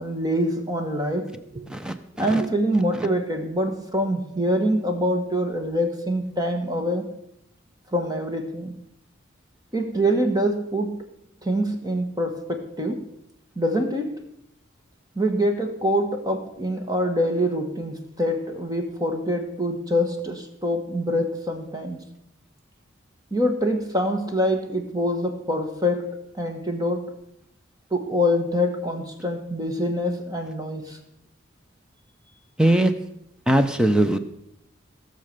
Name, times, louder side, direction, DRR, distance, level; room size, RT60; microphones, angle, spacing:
voice 1, 0.0-1.6 2.2-7.1 7.9-8.7 9.7-11.0 11.4-13.0 13.5-14.1 15.1-22.0 23.3-26.1 26.3-27.1 27.9-31.0, equal, 20° right, 5 dB, 1.4 m, -25 dB
voice 2, 1.7-2.4 32.6-32.9 33.5-34.2, right 1 dB, 5° right, 9 dB, 0.7 m, -20 dB
16.5 x 6.7 x 6.7 m, 0.80 s
head